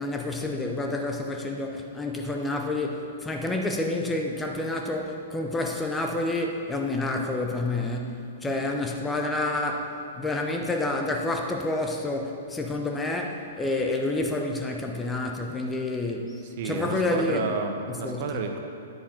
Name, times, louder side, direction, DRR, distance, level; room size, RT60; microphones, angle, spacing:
voice 1, 0.0-17.5 17.9-18.4, left 2 dB, 10° left, 2 dB, 0.8 m, -29 dB
voice 2, 16.6-18.6, right 5 dB, 45° right, 5 dB, 1.0 m, -31 dB
9.9 x 8.6 x 5.7 m, 2.6 s
figure-of-eight pair, 110°, 0 cm